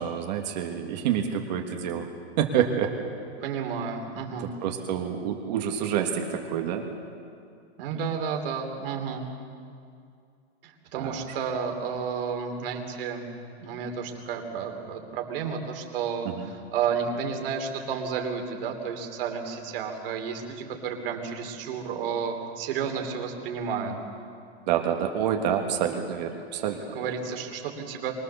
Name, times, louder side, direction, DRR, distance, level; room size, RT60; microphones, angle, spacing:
voice 1, 0.0-2.1 2.4-2.9 4.6-6.9 11.0-11.2 16.2-16.4 24.7-27.1, right 9 dB, 40° right, 3 dB, 1.5 m, -28 dB
voice 2, 3.4-4.5 7.8-9.3 10.6-13.3 13.6-23.9 26.9-28.1, right 6 dB, 55° right, 3 dB, 3.3 m, -31 dB
24.5 x 20.5 x 6.9 m, 2.4 s
supercardioid pair, 175°, 33 cm